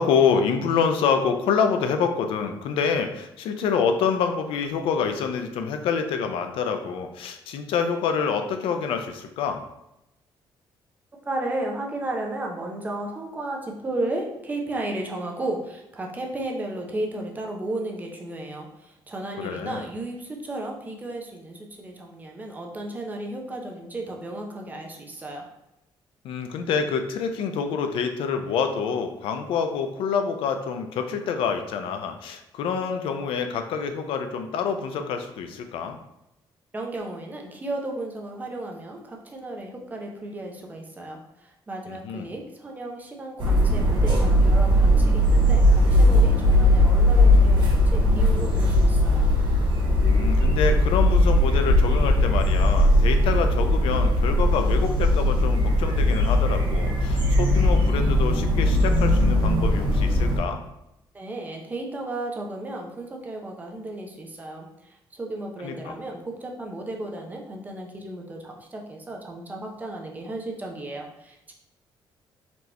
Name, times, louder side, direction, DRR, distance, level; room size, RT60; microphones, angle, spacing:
voice 1, 0.0-9.6 19.4-19.9 26.2-36.0 41.9-42.3 50.0-60.6 65.6-65.9, left 6 dB, 85° left, 6 dB, 0.5 m, -26 dB
voice 2, 11.3-25.5 36.7-49.3 61.1-71.5, right 2 dB, 20° right, 0 dB, 0.6 m, -34 dB
sound 1, 43.4-60.4, left 1 dB, 60° right, 1.3 m, -19 dB
4.2 x 2.9 x 3.3 m, 0.86 s
cardioid pair, 150°, 9 cm